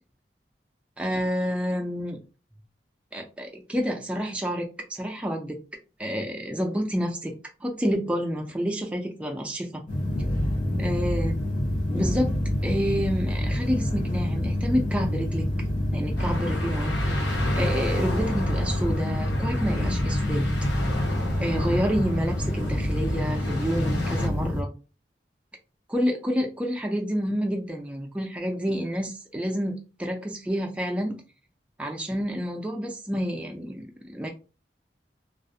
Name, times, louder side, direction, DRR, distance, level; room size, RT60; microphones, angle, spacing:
voice 1, 1.0-2.2 3.1-5.6 6.0-7.3 7.6-9.8 10.8-11.3 11.9-12.3 12.6-15.4 15.9-20.5 21.4-24.7 25.9-31.2 31.8-34.3, equal, 5° right, 2 dB, 0.3 m, -29 dB
sound 1, 9.9-24.6, left 1 dB, 45° left, 0.8 m, -27 dB
sound 2, 16.2-24.3, left 1 dB, 85° left, 0.7 m, -34 dB
2.4 x 2.0 x 2.6 m, 0.33 s
head